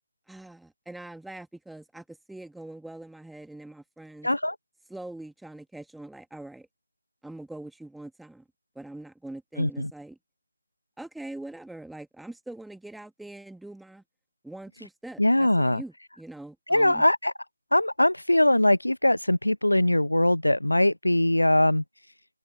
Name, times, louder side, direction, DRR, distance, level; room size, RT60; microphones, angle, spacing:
voice 1, 0.3-4.3 4.9-6.7 7.2-8.4 8.7-10.2 11.0-14.0 14.4-17.0, right 2 dB, ahead, 2.2 m, -43 dB
voice 2, 4.2-4.6 9.6-9.9 15.2-15.8 16.7-17.3 17.7-21.8, left 1 dB, 80° left, 0.5 m, -21 dB
open air
figure-of-eight pair, 155°, 0 cm